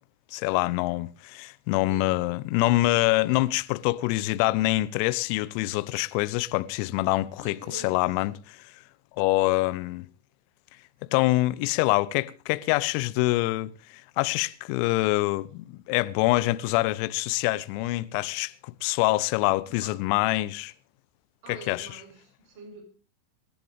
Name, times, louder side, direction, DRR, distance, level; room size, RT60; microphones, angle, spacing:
voice 1, 0.3-8.6 9.2-10.1 11.1-20.7 21.5-21.9, left 19 dB, 45° left, 1.0 m, -25 dB
voice 2, 1.8-2.2 7.4-8.2 19.7-20.0 21.4-22.8, right 4 dB, 45° right, 7.4 m, -46 dB
27.0 x 11.0 x 3.4 m
figure-of-eight pair, 90°, 0 cm